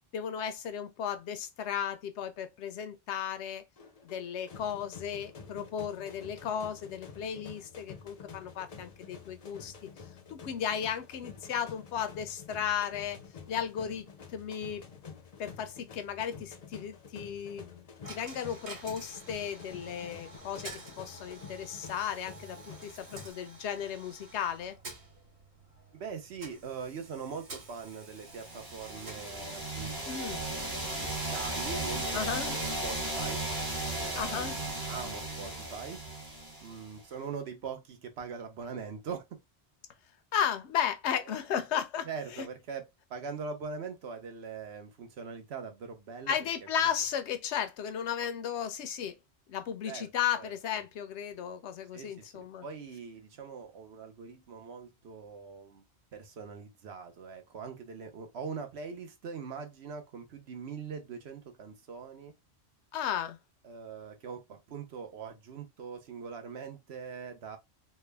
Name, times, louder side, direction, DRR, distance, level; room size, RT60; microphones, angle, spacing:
voice 1, 0.1-3.6 4.0-9.7 10.3-13.2 13.5-14.0 14.3-14.8 15.4-24.8 30.1-30.4 32.1-32.6 34.1-34.6 40.3-42.1 42.3-42.5 46.3-49.2 49.5-52.6 62.9-63.4, left 8 dB, 90° left, 0.9 m, -35 dB
sound 1, 3.8-23.3, left 6 dB, 45° left, 0.5 m, -49 dB
Coin (dropping), 18.0-35.0, right 2 dB, 90° right, 1.5 m, -51 dB
voice 2, 25.9-32.4 32.8-33.4 33.8-36.0 36.6-39.2 41.5-41.6 42.0-46.3 46.8-46.9 49.8-50.1 50.4-50.5 51.9-55.8 56.1-62.3 63.6-67.6, right 5 dB, 75° right, 1.0 m, -42 dB
sound 2, 28.3-37.0, right 1 dB, 25° right, 0.8 m, -36 dB
3.4 x 2.2 x 3.3 m
omnidirectional pair, 1.1 m